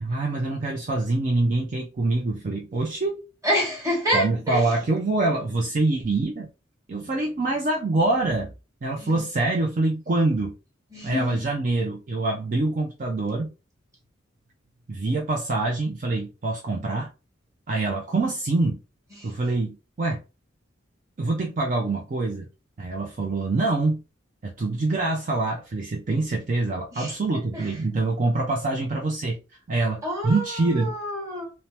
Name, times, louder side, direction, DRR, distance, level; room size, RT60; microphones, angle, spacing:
voice 1, 0.0-3.2 4.1-6.5 6.9-8.5 8.8-10.5 11.0-13.5 14.9-17.1 17.7-18.8 19.2-20.2 21.2-22.5 22.8-24.0 24.4-29.4 29.7-30.9, right 2 dB, 40° right, 0.4 m, -25 dB
voice 2, 3.4-4.7 8.9-9.2 10.9-11.5 19.1-19.3 26.9-27.1 27.5-27.8 30.0-31.5, equal, 15° right, 1.2 m, -28 dB
3.3 x 2.0 x 2.8 m
head